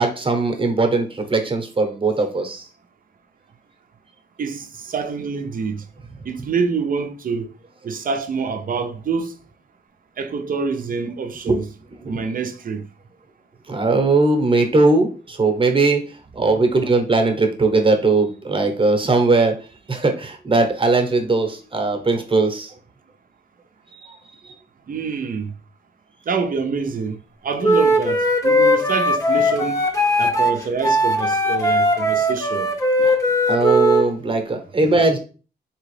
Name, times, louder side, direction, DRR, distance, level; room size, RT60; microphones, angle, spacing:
voice 1, 0.0-2.6 11.5-11.6 12.0-12.2 13.7-16.1 16.3-19.6 19.9-22.7 24.0-24.2 24.4-24.5 33.0-33.2 33.5-35.2, right 3 dB, 30° right, 1.0 m, -19 dB
voice 2, 4.4-5.8 6.3-7.5 7.8-9.4 10.2-11.7 12.1-12.8 24.9-25.5 26.3-27.2 27.4-29.8 30.2-32.7 34.8-35.0, right 5 dB, 50° right, 0.6 m, -26 dB
Wind instrument woodwind instrument, 27.6-34.1, equal, 20° left, 0.9 m, -19 dB
3.6 x 2.9 x 3.3 m
cardioid pair, 65°, 18 cm